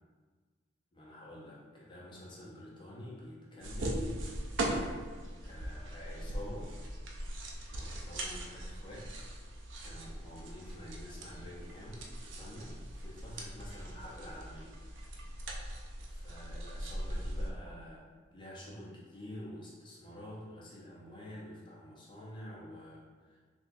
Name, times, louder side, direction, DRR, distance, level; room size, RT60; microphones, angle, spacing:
voice 1, 0.9-4.3 4.6-5.1 5.4-6.7 7.7-9.2 9.8-15.0 16.1-23.4, left 1 dB, 25° left, -6 dB, 0.8 m, -48 dB
sound 1, 3.6-17.5, right 1 dB, 75° right, 0.5 m, -40 dB
3.4 x 2.9 x 2.6 m, 1.5 s
head